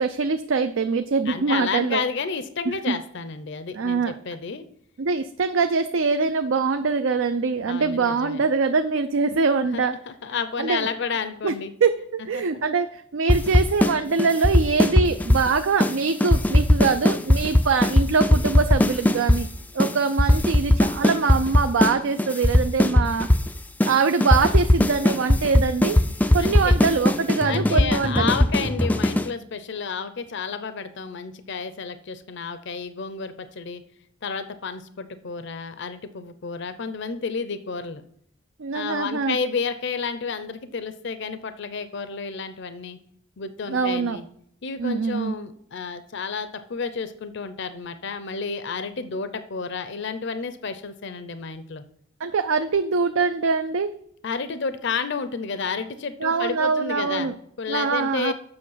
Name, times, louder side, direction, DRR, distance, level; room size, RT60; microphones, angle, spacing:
voice 1, 0.0-2.0 2.9-3.0 3.7-4.1 5.0-10.0 10.6-10.9 11.4-11.5 11.8-19.5 19.7-23.3 23.8-26.0 26.3-28.3 38.6-39.4 43.7-44.2 44.8-45.3 52.2-53.9 56.2-57.3 57.7-58.3, right 4 dB, 65° right, 9 dB, 0.5 m, -23 dB
voice 2, 1.3-4.6 7.7-8.4 9.7-11.7 12.3-12.4 26.4-26.8 27.4-33.8 34.2-38.0 38.7-43.0 43.4-44.2 44.6-51.8 54.2-57.3 57.6-58.3, left 5 dB, 60° left, 11 dB, 0.6 m, -31 dB
sound 1, 13.3-13.9 14.2-15.5 15.8-15.9 16.2-19.4 19.8-19.9 20.2-21.9 22.2-23.5 23.8-23.9 24.2-29.3, left 1 dB, 10° left, 0.3 m, -18 dB
7.8 x 6.1 x 5.6 m, 0.68 s
head